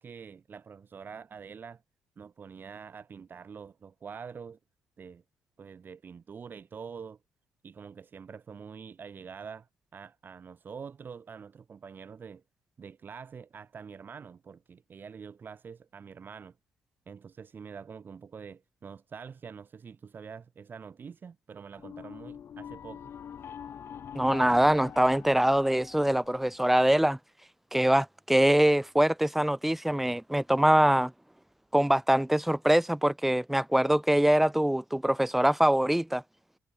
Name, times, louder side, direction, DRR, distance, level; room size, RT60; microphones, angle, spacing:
voice 1, 0.0-1.8 2.2-4.6 5.0-5.2 5.6-7.2 7.6-9.7 9.9-12.4 12.8-16.5 17.1-23.0, right 6 dB, 40° right, 4.7 m, -45 dB
sound 1, 21.8-26.8, left 8 dB, 50° left, 2.4 m, -44 dB
voice 2, 24.1-27.2 27.7-31.1 31.7-36.2, right 1 dB, 5° right, 1.4 m, -23 dB
cardioid pair, 105°, 5 cm